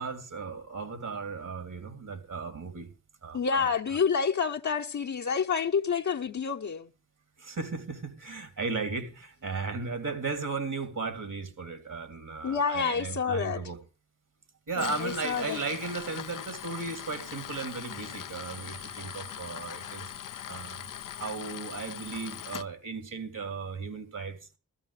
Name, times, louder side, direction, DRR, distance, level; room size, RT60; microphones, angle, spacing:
voice 1, 0.0-2.9 3.2-3.7 7.4-13.8 14.7-20.1 20.5-20.9 21.2-24.4, right 4 dB, 80° right, 3.0 m, -36 dB
voice 2, 3.3-6.9 12.4-13.6 14.8-15.6, left 6 dB, 65° left, 1.1 m, -28 dB
Tools, 14.7-22.6, left 9 dB, 85° left, 0.6 m, -41 dB
15.5 x 14.5 x 3.3 m
cardioid pair, 60°, 31 cm